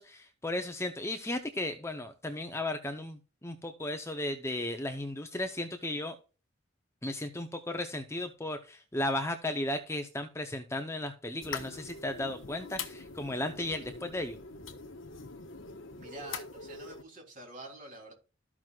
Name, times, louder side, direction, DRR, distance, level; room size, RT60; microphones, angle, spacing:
voice 1, 0.0-6.2 7.0-14.4, left 1 dB, 15° left, 0.7 m, -35 dB
sound 1, 11.4-17.0, left 5 dB, 70° left, 1.2 m, -43 dB
voice 2, 16.0-18.1, right 2 dB, 40° right, 3.5 m, -47 dB
14.0 x 6.1 x 2.4 m
head